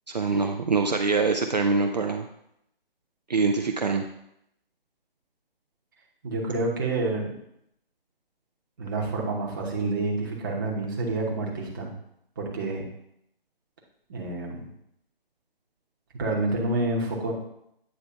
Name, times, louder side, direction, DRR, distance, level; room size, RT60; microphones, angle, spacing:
voice 1, 0.1-2.3 3.3-4.0, right 4 dB, 45° right, 4 dB, 0.5 m, -24 dB
voice 2, 6.2-7.3 8.8-11.9 12.4-12.9 14.1-14.7 16.1-17.3, right 2 dB, 20° right, -2 dB, 1.0 m, -28 dB
8.7 x 3.3 x 5.6 m, 0.77 s
figure-of-eight pair, 145°, 30 cm